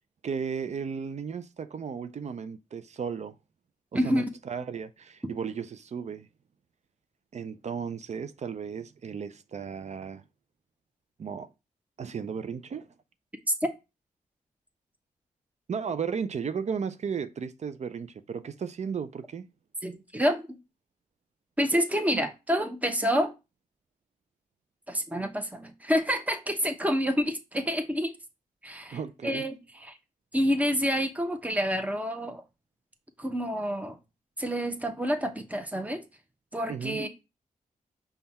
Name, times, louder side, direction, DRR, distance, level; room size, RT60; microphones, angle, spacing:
voice 1, 0.2-3.4 4.0-6.3 7.3-10.2 11.2-11.5 12.0-12.9 15.7-19.5 28.9-29.4 36.7-37.0, right 6 dB, 50° right, 0.4 m, -34 dB
voice 2, 3.9-4.3 19.8-20.6 21.6-23.3 24.9-28.1 28.6-30.0 30.3-32.4 33.2-34.0 34.4-36.0 36.5-37.1, equal, 10° right, 0.8 m, -28 dB
5.3 x 2.3 x 4.1 m
cardioid pair, 65°, 15 cm